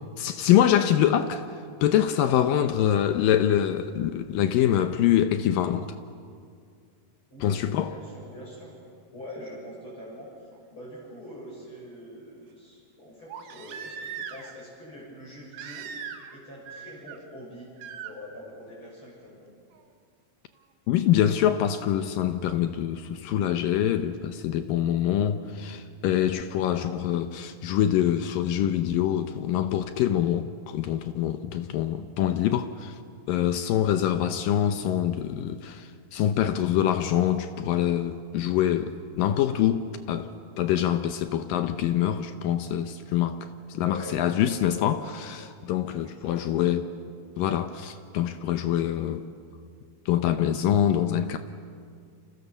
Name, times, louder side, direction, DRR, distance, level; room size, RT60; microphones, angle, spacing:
voice 1, 0.2-1.4 1.8-5.9 7.4-7.9 20.9-32.9 33.3-40.3 40.6-46.8 47.4-49.2 50.1-51.4, left 10 dB, 75° left, 2.4 m, -25 dB
voice 2, 7.3-8.7 9.1-15.9 16.3-17.7 18.0-19.5 43.7-44.9 46.0-46.7, equal, 30° left, 7.6 m, -44 dB
Crying sobbing, 10.6-10.7 13.3-14.6 15.5-16.4 16.7-17.2 17.8-18.1 19.7-19.8, right 7 dB, 80° right, 3.4 m, -39 dB
29.5 x 27.0 x 7.1 m
omnidirectional pair, 4.4 m